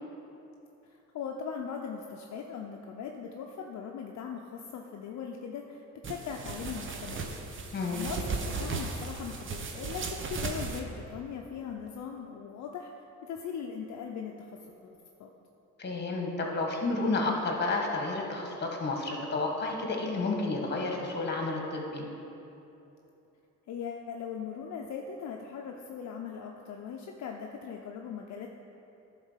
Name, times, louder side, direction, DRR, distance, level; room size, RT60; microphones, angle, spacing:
voice 1, 0.8-7.3 7.6-12.9 13.2-15.3 23.7-28.5, left 6 dB, 65° left, 1 dB, 0.6 m, -40 dB
sound 1, 6.0-10.8, right 4 dB, 40° right, 0.9 m, -36 dB
voice 2, 15.8-22.0, left 3 dB, 35° left, 1 dB, 1.5 m, -31 dB
10.5 x 4.0 x 5.7 m, 2.9 s
cardioid pair, 90°, 30 cm